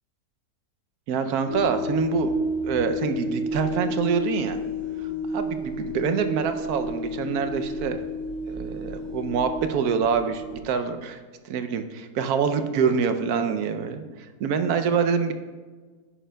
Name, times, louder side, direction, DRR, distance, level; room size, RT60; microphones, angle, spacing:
voice 1, 1.1-2.4 2.6-4.6 5.3-8.0 8.5-11.2 11.4-14.0 14.4-15.3, right 6 dB, 70° right, 8 dB, 1.0 m, -25 dB
sound 1, 1.5-10.6, left 1 dB, 80° left, 3.4 m, -31 dB
10.0 x 9.9 x 2.2 m, 1.4 s
omnidirectional pair, 1.8 m